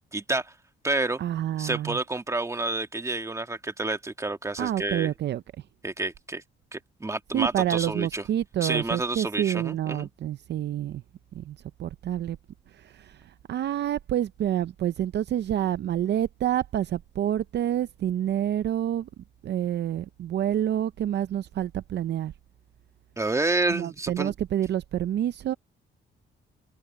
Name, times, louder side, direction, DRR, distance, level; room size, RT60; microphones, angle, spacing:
voice 1, 0.1-0.5 0.8-1.2 1.6-5.1 5.8-6.4 6.7-8.2 8.6-10.1 23.2-24.3, right 2 dB, 15° right, 1.7 m, -29 dB
voice 2, 1.2-2.0 4.6-5.4 7.3-11.0 11.3-12.4 12.8-19.1 19.4-22.3 23.7-25.5, right 11 dB, 60° right, 0.6 m, -28 dB
cardioid pair, 90°, 20 cm